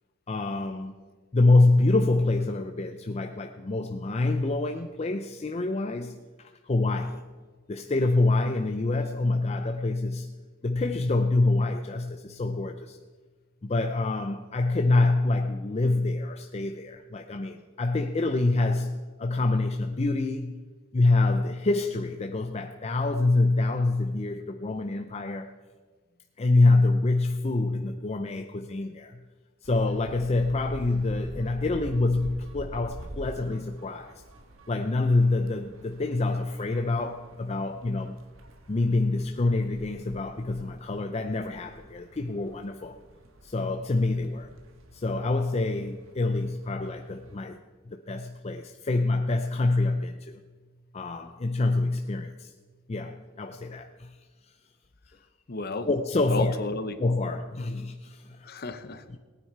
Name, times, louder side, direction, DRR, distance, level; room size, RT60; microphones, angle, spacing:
voice 1, 0.3-1.0 1.3-7.2 7.7-10.3 10.6-13.0 13.6-20.6 20.9-25.5 26.4-29.2 29.6-34.2 34.7-38.2 38.7-42.9 43.4-44.5 44.9-47.6 47.9-50.4 50.9-52.5 52.9-54.2 55.9-56.6 57.0-58.5, left 2 dB, 30° left, 6 dB, 0.5 m, -26 dB
sound 1, 29.6-47.4, right 1 dB, 80° right, 1.4 m, -47 dB
voice 2, 55.5-55.9 56.3-57.0 58.4-59.2, left 3 dB, 50° left, 10 dB, 0.9 m, -33 dB
18.0 x 9.6 x 4.5 m, 1.4 s
head